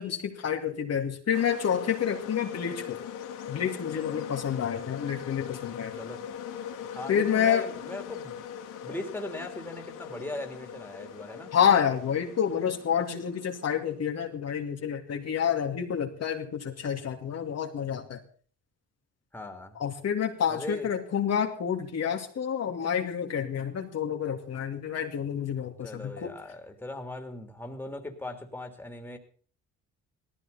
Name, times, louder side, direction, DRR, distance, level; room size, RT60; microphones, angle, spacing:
voice 1, 0.0-3.0 3.5-5.9 7.1-7.7 11.5-18.2 19.8-26.3, left 8 dB, 55° left, 2 dB, 2.5 m, -28 dB
sound 1, 1.3-13.9, left 9 dB, 90° left, 2.7 m, -40 dB
voice 2, 5.6-6.2 6.9-8.4 8.8-11.5 19.3-19.8 20.5-20.9 25.8-29.2, left 1 dB, 5° left, 5 dB, 3.3 m, -39 dB
18.0 x 14.5 x 4.2 m, 0.43 s
cardioid pair, 90°, 30 cm